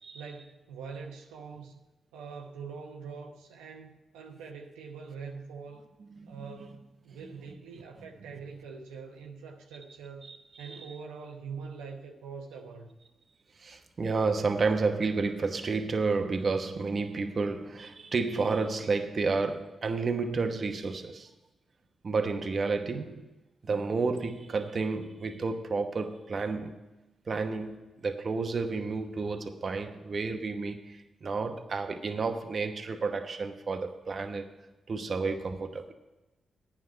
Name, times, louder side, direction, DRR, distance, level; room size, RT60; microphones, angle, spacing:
voice 1, 0.1-1.8 2.1-5.9 6.3-10.3 10.6-12.9, right 5 dB, 90° right, 1 dB, 0.9 m, -44 dB
voice 2, 6.2-6.6 10.3-10.8 13.6-21.3 22.0-23.2 23.6-26.8 27.3-34.5 34.9-35.9, right 4 dB, 50° right, 6 dB, 1.0 m, -31 dB
9.5 x 6.0 x 8.6 m, 1.1 s
hypercardioid pair, 40°, 0 cm